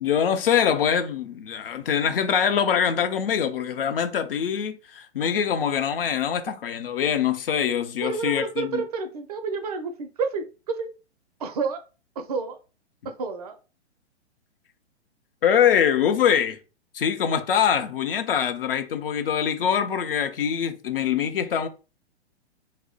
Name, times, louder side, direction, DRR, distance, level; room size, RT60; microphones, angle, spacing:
voice 1, 0.0-8.8 15.4-16.6 16.9-21.7, left 8 dB, 55° left, 0.6 m, -24 dB
voice 2, 8.0-10.9 11.4-11.8 12.2-12.6 13.2-13.6, right 4 dB, 35° right, 0.4 m, -29 dB
2.6 x 2.1 x 3.8 m
figure-of-eight pair, 115°, 34 cm